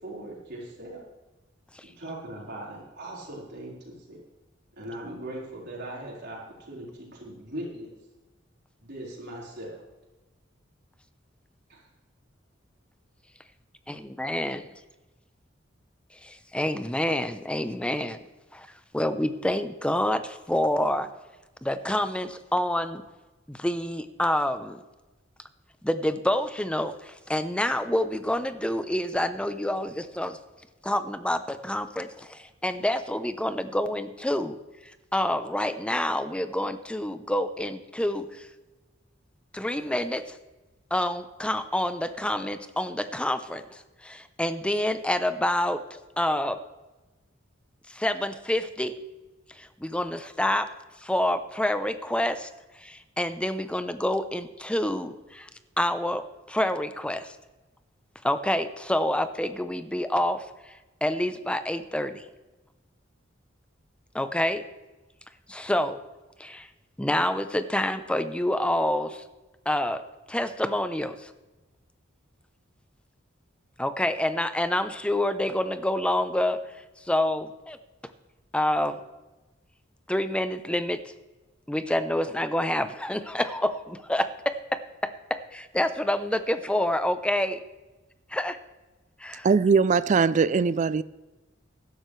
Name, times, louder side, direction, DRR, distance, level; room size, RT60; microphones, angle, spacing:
voice 1, 0.0-1.0 1.8-4.2 4.8-8.0 8.8-9.8 11.7-11.8, right 1 dB, 60° right, 4.4 m, -39 dB
voice 2, 13.9-14.6 16.2-18.2 18.5-18.7 18.9-21.1 21.6-23.0 23.5-24.8 25.8-30.4 30.8-34.6 35.1-38.5 39.5-40.4 40.9-46.6 47.9-48.9 49.5-50.7 51.0-52.5 52.8-55.5 55.8-57.3 58.2-60.7 61.0-62.2 64.1-64.6 65.5-66.0 66.4-66.7 67.0-69.2 69.7-70.0 70.3-71.3 73.8-76.6 77.1-77.8 78.5-79.0 80.1-81.0 81.7-84.8 85.3-87.6 88.3-88.6 89.2-89.5, left 1 dB, 5° left, 0.7 m, -27 dB
voice 3, 89.4-91.0, right 5 dB, 40° right, 0.4 m, -21 dB
16.0 x 12.0 x 3.3 m
head